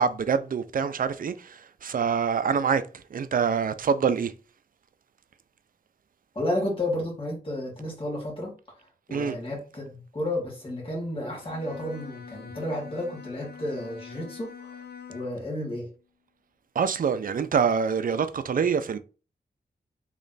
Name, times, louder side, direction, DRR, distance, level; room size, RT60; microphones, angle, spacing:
voice 1, 0.0-2.8 3.1-4.3 9.1-9.4 16.8-19.0, right 6 dB, 60° right, 0.5 m, -25 dB
voice 2, 6.4-14.8 15.1-15.9, left 1 dB, 35° left, 1.9 m, -32 dB
Bowed string instrument, 11.3-15.5, left 6 dB, 75° left, 0.6 m, -44 dB
3.2 x 3.0 x 3.9 m
wide cardioid pair, 80°, 16 cm